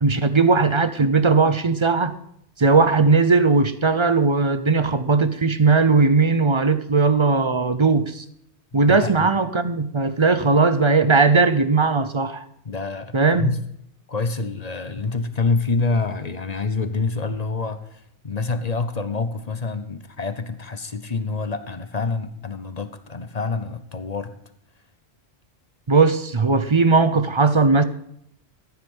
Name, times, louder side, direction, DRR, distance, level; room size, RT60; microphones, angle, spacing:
voice 1, 0.0-2.2 2.6-8.2 8.7-12.4 13.1-13.5 25.9-27.8, right 4 dB, 30° right, 0.7 m, -18 dB
voice 2, 8.8-9.3 12.6-13.6 14.1-24.3, left 4 dB, 40° left, 0.8 m, -27 dB
14.5 x 9.6 x 5.5 m
omnidirectional pair, 1.2 m